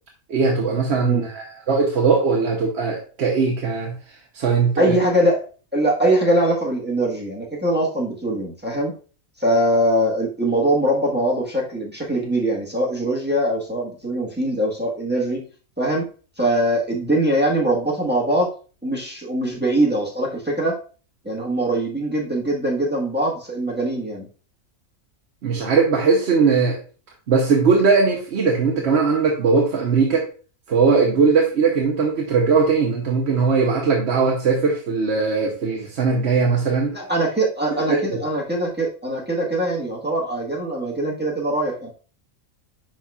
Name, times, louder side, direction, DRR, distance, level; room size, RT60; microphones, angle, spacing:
voice 1, 0.3-3.9 4.3-4.9 25.4-26.8 27.3-30.3 30.7-36.9 37.9-38.2, right 5 dB, 55° right, 0 dB, 1.1 m, -19 dB
voice 2, 4.8-5.4 5.7-8.9 9.4-15.4 15.8-16.0 16.4-18.5 18.8-20.8 21.2-24.3 36.9-41.9, right 1 dB, 10° right, -3 dB, 1.3 m, -22 dB
10.0 x 4.1 x 2.4 m, 0.38 s
omnidirectional pair, 1.4 m